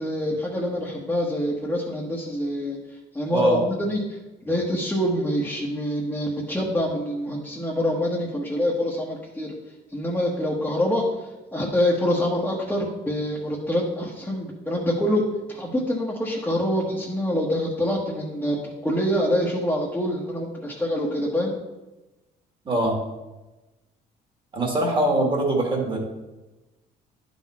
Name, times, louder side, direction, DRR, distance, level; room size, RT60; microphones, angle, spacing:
voice 1, 0.0-2.8 3.1-4.0 4.4-9.5 9.9-11.0 11.5-15.2 15.5-21.5, equal, 10° left, -5 dB, 1.3 m, -25 dB
voice 2, 22.7-23.0 24.5-26.0, right 1 dB, 30° right, 0 dB, 2.1 m, -23 dB
10.5 x 4.2 x 4.2 m, 1.1 s
cardioid pair, 110°, 17 cm